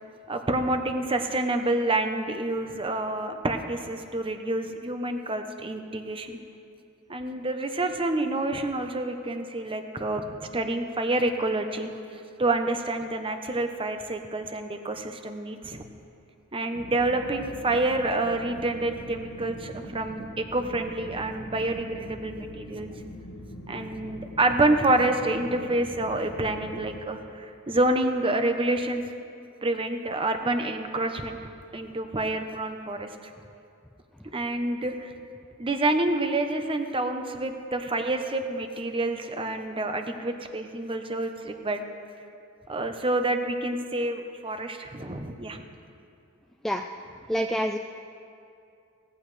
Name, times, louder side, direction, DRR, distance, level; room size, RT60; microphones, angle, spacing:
voice 1, 0.3-6.4 7.1-15.8 16.5-22.9 23.7-29.0 29.6-31.4 31.7-33.1 34.3-35.1 35.6-41.8 42.7-45.6, right 2 dB, 25° right, 6 dB, 0.9 m, -28 dB
sound 1, 16.7-27.0, equal, 60° left, 1.4 m, -42 dB
voice 2, 47.3-47.8, equal, ahead, 3 dB, 0.3 m, -26 dB
18.0 x 15.0 x 3.3 m, 2.5 s
head